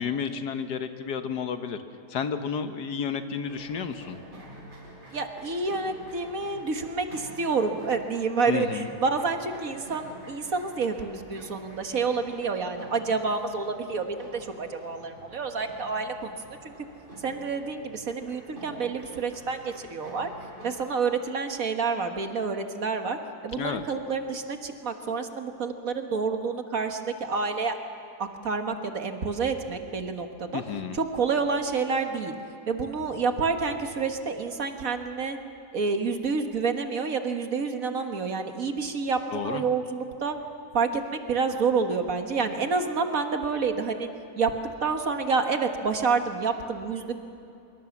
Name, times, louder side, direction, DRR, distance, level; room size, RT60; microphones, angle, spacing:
voice 1, 0.0-1.8 2.1-4.2 8.5-8.9 23.6-23.8 30.5-31.0 39.3-39.6, left 7 dB, 80° left, 8 dB, 1.7 m, -31 dB
sound 1, 3.4-20.8, right 1 dB, 30° right, 5.6 m, -48 dB
voice 2, 5.1-16.7 17.2-20.3 20.6-23.2 23.4-27.8 28.2-30.6 30.9-32.3 32.7-35.4 35.7-40.4 40.7-44.1 44.4-44.5 44.8-47.1, right 4 dB, 55° right, 5 dB, 1.9 m, -28 dB
24.0 x 23.5 x 7.3 m, 2.7 s
omnidirectional pair, 1.8 m